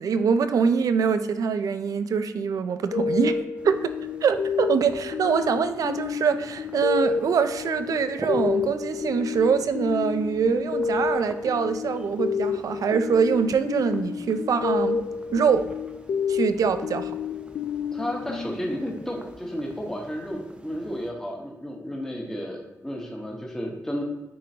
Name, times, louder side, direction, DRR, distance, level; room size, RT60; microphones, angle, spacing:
voice 1, 0.0-3.4 3.6-3.9 4.2-15.0 15.3-15.7 16.3-17.2, right 6 dB, 85° right, 10 dB, 0.4 m, -24 dB
sound 1, 2.9-19.3, left 6 dB, 80° left, 0.3 m, -30 dB
sound 2, 3.6-21.1, right 1 dB, 20° right, 0.6 m, -46 dB
voice 2, 17.9-24.0, equal, 10° left, -2 dB, 1.1 m, -32 dB
9.2 x 3.7 x 2.8 m, 1.0 s
wide cardioid pair, 120°, 6 cm